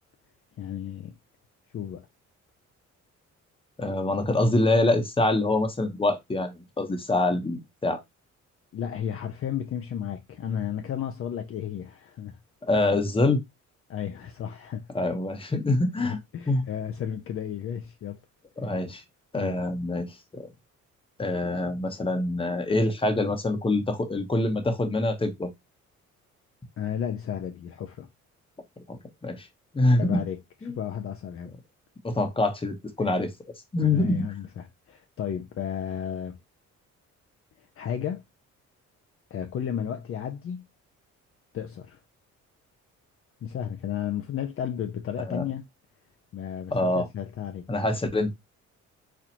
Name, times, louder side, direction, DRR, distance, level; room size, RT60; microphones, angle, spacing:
voice 1, 0.6-1.1 1.7-2.1 8.7-12.4 13.9-14.9 16.0-18.2 19.3-19.6 26.8-28.1 30.0-30.4 30.6-31.5 33.8-36.4 37.8-38.2 39.3-40.7 41.5-42.0 43.4-45.6 46.3-47.7, left 9 dB, 45° left, 0.5 m, -33 dB
voice 2, 3.8-8.0 12.6-13.4 14.9-16.2 16.5-16.6 18.6-19.0 19.3-20.5 21.2-25.5 28.9-29.5 29.7-30.2 30.6-30.7 32.0-33.3 33.7-34.3 45.3-45.4 46.7-47.1 47.7-48.3, left 2 dB, 20° left, 0.9 m, -25 dB
4.3 x 2.4 x 2.8 m
cardioid pair, 90°, 30 cm